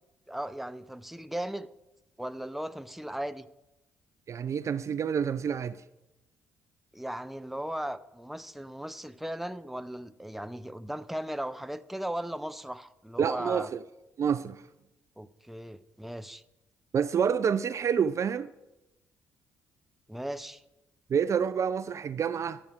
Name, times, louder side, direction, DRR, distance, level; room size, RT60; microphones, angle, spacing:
voice 1, 0.3-1.7 2.2-3.4 6.9-13.7 15.2-16.4 20.1-20.6, right 1 dB, 5° right, 0.7 m, -37 dB
voice 2, 4.3-5.8 13.2-13.8 14.2-14.6 16.9-18.5 21.1-22.6, right 7 dB, 40° right, 0.4 m, -28 dB
21.5 x 7.3 x 4.9 m
figure-of-eight pair, 40°, 7 cm